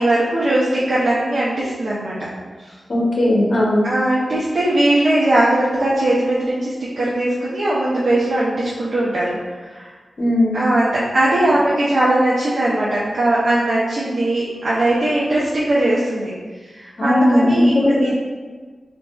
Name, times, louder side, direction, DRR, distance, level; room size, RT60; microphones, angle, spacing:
voice 1, 0.0-2.3 2.6-2.7 3.8-9.3 9.7-9.9 10.5-16.3 16.7-18.1, right 1 dB, 60° right, -7 dB, 0.6 m, -19 dB
voice 2, 2.9-3.8 10.2-10.7 17.0-18.1, left 1 dB, 50° left, -4 dB, 0.9 m, -17 dB
4.2 x 2.6 x 2.2 m, 1.4 s
wide cardioid pair, 110°, 0 cm